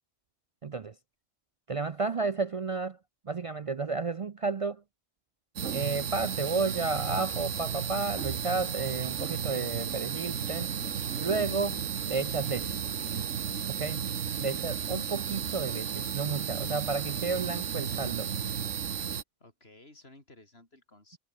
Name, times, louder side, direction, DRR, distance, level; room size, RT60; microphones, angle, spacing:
voice 1, 0.6-1.0 1.7-3.0 3.2-4.8 5.7-10.7 11.2-12.8 13.6-14.0 14.4-18.3, right 4 dB, 50° right, 0.4 m, -32 dB
sound 1, 5.6-19.2, right 7 dB, 80° right, 1.5 m, -33 dB
voice 2, 13.9-14.6 19.4-21.2, left 2 dB, 55° left, 5.1 m, -56 dB
omnidirectional pair, 1.2 m